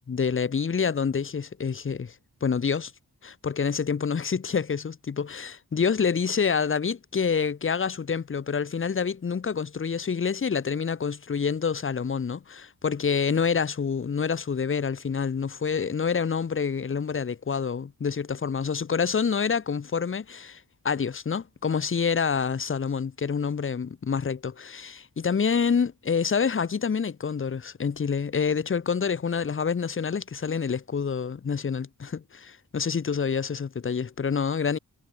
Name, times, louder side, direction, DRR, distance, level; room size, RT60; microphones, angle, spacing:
voice 1, 0.1-2.1 2.4-2.9 3.2-34.8, left 6 dB, 30° left, 0.6 m, -27 dB
wide cardioid pair, 65°, 40 cm